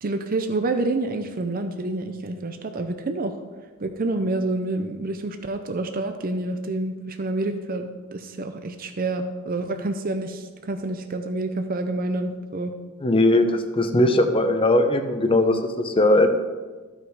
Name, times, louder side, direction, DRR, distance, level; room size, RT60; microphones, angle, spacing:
voice 1, 0.0-3.4 3.8-12.7, right 2 dB, 45° right, 7 dB, 0.6 m, -28 dB
voice 2, 13.0-16.3, left 1 dB, 25° left, 6 dB, 0.9 m, -19 dB
13.5 x 6.4 x 4.7 m, 1.4 s
head